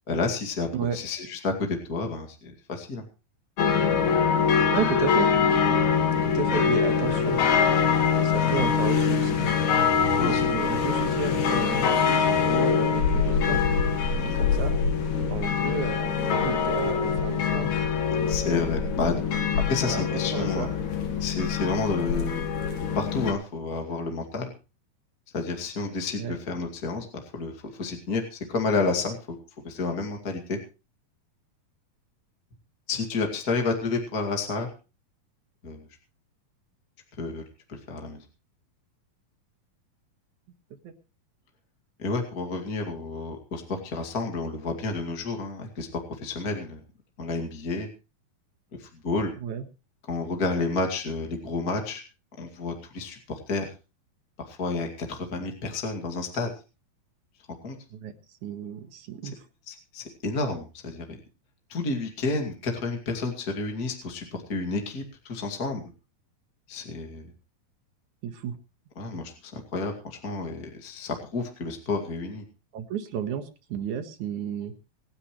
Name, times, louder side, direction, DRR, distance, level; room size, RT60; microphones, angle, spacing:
voice 1, 0.1-1.5 1.9-3.0 8.5-8.6 10.2-10.5 14.2-14.4 18.3-19.1 19.6-20.7 21.2-22.5 22.9-24.5 25.3-27.5 27.8-29.2 29.6-30.6 32.9-34.7 35.6-35.8 37.2-37.4 37.7-38.2 42.0-45.9 46.2-46.8 47.2-47.9 48.8-49.3 50.1-52.0 52.4-53.7 54.5-56.5 57.6-57.8 59.7-61.2 61.7-65.8 66.7-67.3 69.0-72.4, left 3 dB, 30° left, 2 dB, 2.2 m, -30 dB
sound 1, 3.6-23.3, left 6 dB, 60° left, 2.9 m, -24 dB
voice 2, 4.7-5.3 6.3-7.4 8.2-9.5 10.2-13.6 14.2-14.7 15.3-17.7 19.7-20.9 26.2-26.4 40.8-40.9 49.4-49.6 57.9-58.1 58.4-59.4 68.2-68.5 72.7-74.7, right 7 dB, 60° right, 8 dB, 2.7 m, -33 dB
26.0 x 9.9 x 3.2 m, 0.32 s
omnidirectional pair, 4.2 m